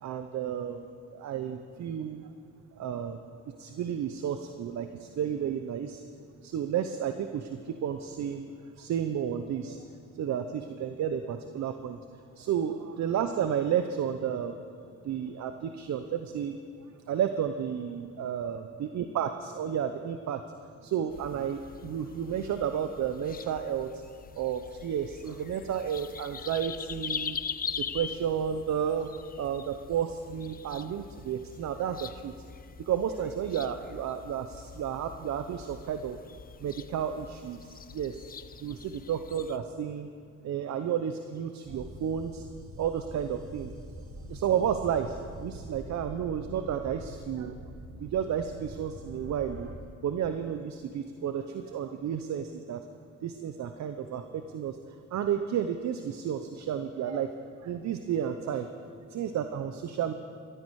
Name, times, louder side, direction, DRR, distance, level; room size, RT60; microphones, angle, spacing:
voice 1, 0.0-2.3 2.8-6.0 6.4-8.5 8.8-9.8 10.2-12.0 12.4-14.6 15.0-16.6 17.1-20.4 20.8-23.9 24.3-27.4 27.8-29.1 29.4-32.3 32.8-36.2 36.6-38.2 38.6-40.1 40.4-42.4 42.8-43.7 44.3-47.5 48.0-49.7 50.0-52.8 53.2-54.8 55.1-57.3 57.6-58.7 59.1-60.1, right 8 dB, 65° right, 8 dB, 0.8 m, -32 dB
sound 1, 21.1-39.6, left 6 dB, 30° left, 0.6 m, -42 dB
sound 2, 41.6-49.8, right 1 dB, 45° right, 2.2 m, -44 dB
18.5 x 13.5 x 4.8 m, 2.4 s
cardioid pair, 90°, 30 cm